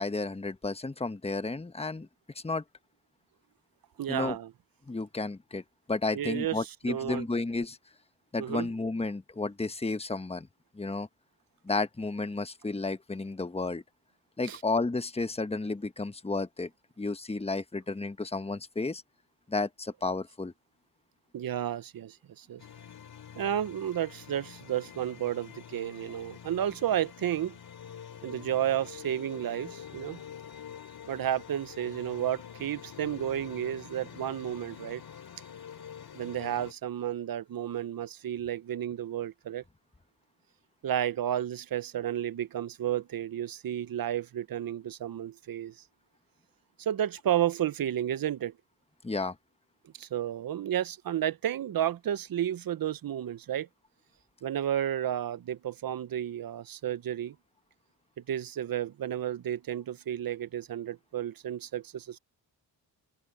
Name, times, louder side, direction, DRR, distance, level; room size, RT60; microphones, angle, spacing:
voice 1, 0.0-2.1 2.3-2.6 4.1-4.4 4.9-5.6 5.9-7.8 8.3-10.5 10.7-11.1 11.6-13.8 14.4-16.7 17.0-19.0 19.5-20.5 49.0-49.4, left 3 dB, 15° left, 1.2 m, -32 dB
voice 2, 4.0-4.5 6.1-7.2 8.4-8.7 14.4-14.6 21.3-22.6 23.4-27.5 28.2-30.2 31.1-35.0 36.1-39.6 40.8-45.7 46.8-48.5 50.0-53.7 54.4-57.4 58.3-62.2, right 10 dB, 60° right, 0.8 m, -32 dB
sound 1, 22.6-36.7, left 8 dB, 70° left, 3.4 m, -46 dB
open air
cardioid pair, 75°, 39 cm